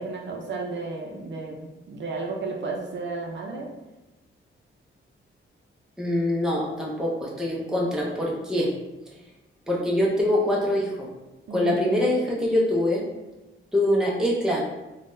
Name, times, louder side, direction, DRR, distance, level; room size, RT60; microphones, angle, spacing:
voice 1, 0.0-3.7 11.5-11.7, right 3 dB, 60° right, 1 dB, 0.5 m, -33 dB
voice 2, 6.0-8.7 9.7-11.1 11.5-13.0 13.7-14.6, left 1 dB, 5° right, -4 dB, 0.5 m, -24 dB
3.6 x 2.1 x 2.5 m, 1.1 s
wide cardioid pair, 160°, 21 cm